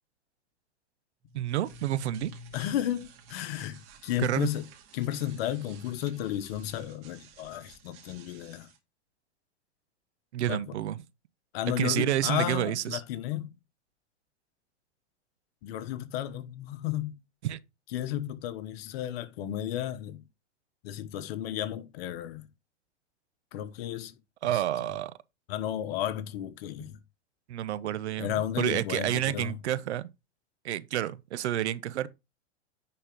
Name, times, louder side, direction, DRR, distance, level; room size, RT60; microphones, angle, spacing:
sound 1, 1.2-8.8, right 1 dB, 50° right, 2.3 m, -51 dB
voice 1, 1.3-2.3 4.2-4.5 10.3-11.0 11.8-13.0 17.4-17.6 24.4-25.1 27.5-30.1 30.6-32.1, right 12 dB, 70° right, 0.8 m, -29 dB
voice 2, 2.5-4.7 4.9-8.7 10.5-10.8 11.5-13.5 15.6-17.2 17.9-20.2 20.8-22.5 23.5-24.1 25.5-27.0 28.2-29.6, left 12 dB, 55° left, 1.2 m, -33 dB
10.0 x 4.4 x 3.7 m
hypercardioid pair, 100°, 35 cm